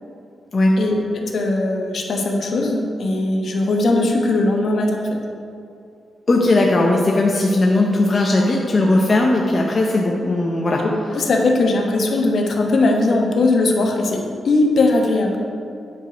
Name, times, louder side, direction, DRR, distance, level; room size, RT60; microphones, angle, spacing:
voice 1, 0.8-5.1 10.8-15.4, left 2 dB, 55° left, 1 dB, 1.0 m, -19 dB
voice 2, 6.3-10.8, left 2 dB, 30° left, -1 dB, 0.6 m, -17 dB
9.4 x 5.0 x 5.0 m, 2.5 s
wide cardioid pair, 160°, 0 cm